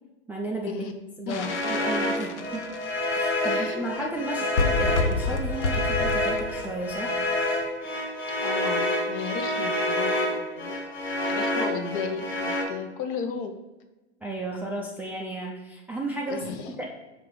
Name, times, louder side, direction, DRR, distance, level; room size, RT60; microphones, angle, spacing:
voice 1, 0.3-0.8 1.2-2.6 3.1-7.3 14.2-16.4 16.8-16.9, right 2 dB, 5° right, -3 dB, 0.4 m, -34 dB
sound 1, 1.3-3.1 3.9-4.1 4.4-7.5, left 3 dB, 85° left, 0.7 m, -29 dB
voice 2, 1.3-1.6 3.4-4.1 8.4-10.8 11.1-13.5 16.3-16.9, left 6 dB, 50° left, 7 dB, 0.8 m, -34 dB
sound 2, 1.3-12.6, left 1 dB, 30° left, 1.5 m, -28 dB
5.7 x 3.8 x 4.7 m, 1.1 s
hypercardioid pair, 110°, 34 cm